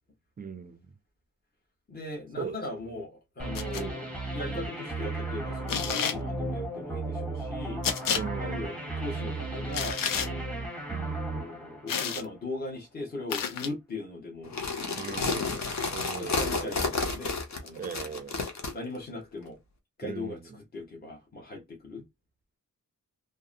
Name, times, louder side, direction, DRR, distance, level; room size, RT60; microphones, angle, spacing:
voice 1, 0.4-0.9 2.4-2.6 3.7-4.1 8.1-8.7 10.9-11.4 15.0-15.6 15.9-16.6 17.8-18.4 20.0-20.4, right 6 dB, 25° right, 0.4 m, -39 dB
voice 2, 1.9-7.8 8.4-10.7 11.3-15.7 16.1-17.9 18.7-19.6 20.0-22.0, left 2 dB, 30° left, 1.0 m, -39 dB
sound 1, 3.4-12.4, right 2 dB, 5° left, 1.1 m, -35 dB
sound 2, 3.6-3.8 5.7-6.2 7.8-8.2 9.7-10.3 11.9-12.3 13.3-13.7, left 7 dB, 75° left, 0.5 m, -30 dB
sound 3, 14.4-18.7, left 4 dB, 55° left, 0.8 m, -31 dB
2.6 x 2.1 x 2.4 m
cardioid pair, 75°, 34 cm